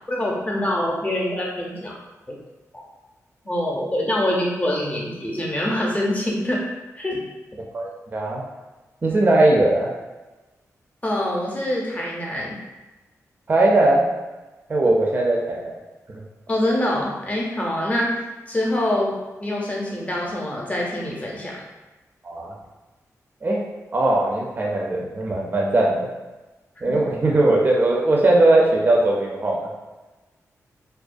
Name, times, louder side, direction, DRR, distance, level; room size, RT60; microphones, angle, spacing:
voice 1, 0.1-2.0 2.7-2.8 3.4-6.6 7.0-7.2 11.0-12.6 16.5-18.2 18.5-21.6 26.9-27.0, left 1 dB, 25° left, -3 dB, 0.6 m, -25 dB
voice 2, 7.7-8.4 9.0-9.9 13.5-14.0 14.7-15.7 22.2-22.5 23.4-23.6 23.9-26.1 26.8-29.7, right 2 dB, 35° right, -2 dB, 0.4 m, -19 dB
2.3 x 2.1 x 2.5 m, 1.2 s
cardioid pair, 70°, 6 cm